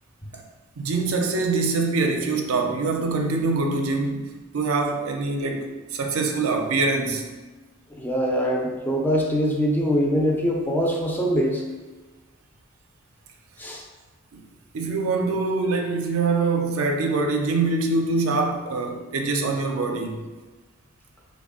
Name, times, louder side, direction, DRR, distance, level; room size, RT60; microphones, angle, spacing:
voice 1, 0.8-7.3 14.3-14.4 14.7-20.2, right 3 dB, 70° right, 0.4 m, -24 dB
voice 2, 7.9-11.6 13.6-13.8, equal, 10° left, 0.4 m, -23 dB
3.3 x 2.1 x 3.6 m
head